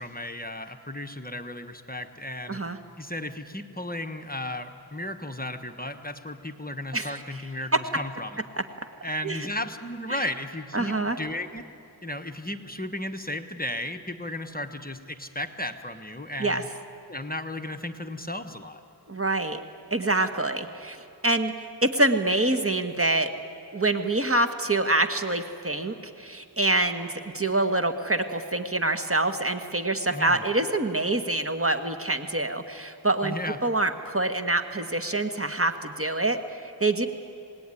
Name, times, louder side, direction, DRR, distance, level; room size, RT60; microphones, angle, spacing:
voice 1, 0.0-2.6 3.0-8.4 9.0-11.6 12.0-16.7 17.1-18.8 30.1-30.4 33.2-33.6, left 1 dB, 20° left, 6 dB, 1.2 m, -34 dB
voice 2, 10.7-11.2 16.4-16.6 19.1-19.6 19.9-21.5 21.8-23.3 23.7-33.3 33.6-37.1, right 2 dB, 35° right, 7 dB, 1.6 m, -26 dB
27.0 x 19.5 x 9.9 m, 2.6 s
wide cardioid pair, 55°, 41 cm